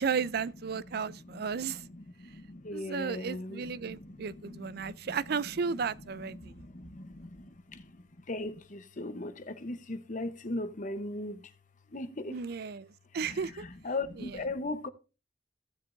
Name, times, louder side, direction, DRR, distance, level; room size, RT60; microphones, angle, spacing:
voice 1, 0.0-1.8 2.7-6.5 12.3-13.6 14.2-14.4, right 6 dB, 60° right, 0.5 m, -34 dB
voice 2, 0.7-5.2 5.7-5.8 6.1-11.5 11.9-12.4 13.1-14.9, left 2 dB, 45° left, 0.9 m, -39 dB
15.0 x 7.4 x 2.6 m
head